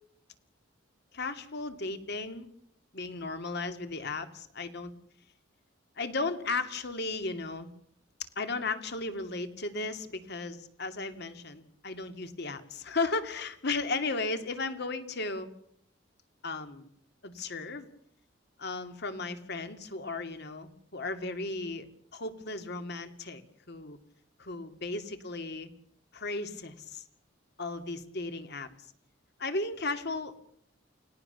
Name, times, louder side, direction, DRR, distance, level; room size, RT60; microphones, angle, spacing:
voice 1, 1.1-2.5 2.9-4.9 6.0-7.7 8.4-15.5 16.4-16.9 17.2-17.9 18.6-23.4 23.7-24.0 24.4-25.7 26.1-27.0 27.6-28.7 29.4-30.3, left 3 dB, 60° left, 8 dB, 2.5 m, -35 dB
30.0 x 18.0 x 6.9 m, 0.69 s
head